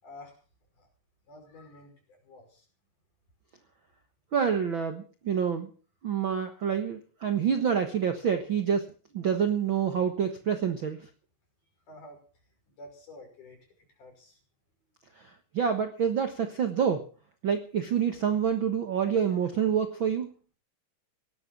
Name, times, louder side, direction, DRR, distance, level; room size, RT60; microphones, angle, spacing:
voice 1, 0.0-0.4 0.8-0.9 1.3-2.7 11.9-12.2 12.8-13.6 14.0-14.4, left 1 dB, 60° left, 2 dB, 7.2 m, -49 dB
voice 2, 4.3-5.7 6.0-8.8 9.1-11.0 15.5-17.0 17.4-20.3, right 7 dB, 55° right, 6 dB, 1.4 m, -27 dB
18.0 x 11.0 x 6.1 m, 0.39 s
omnidirectional pair, 4.0 m